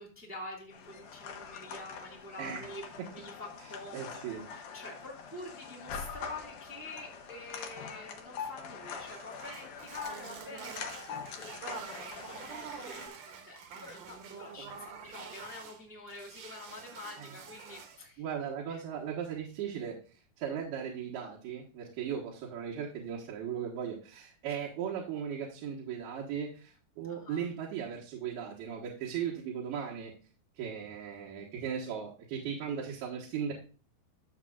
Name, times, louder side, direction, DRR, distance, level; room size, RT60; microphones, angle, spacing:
voice 1, 0.0-4.2 4.5-18.2 18.7-18.8 27.0-27.4, left 2 dB, 5° right, -1 dB, 1.3 m, -47 dB
sound 1, 0.7-13.1, left 6 dB, 65° left, 2.4 m, -44 dB
voice 2, 3.9-4.4 17.2-17.3 18.2-20.0 20.4-30.1 30.6-33.5, right 8 dB, 80° right, -3 dB, 3.3 m, -37 dB
sound 2, 9.1-15.8 16.1-18.0, right 6 dB, 65° right, 2.6 m, -47 dB
12.5 x 7.4 x 2.4 m, 0.38 s
omnidirectional pair, 4.4 m